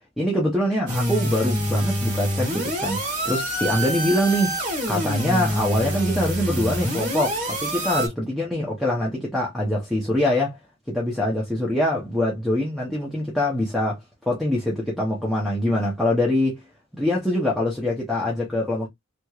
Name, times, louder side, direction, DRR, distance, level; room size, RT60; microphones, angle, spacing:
voice 1, 0.2-4.6 4.9-10.6 10.9-16.6 17.0-18.9, left 1 dB, ahead, 0.7 m, -24 dB
sound 1, 0.9-8.1, equal, 35° right, 1.2 m, -26 dB
3.0 x 2.9 x 2.3 m
head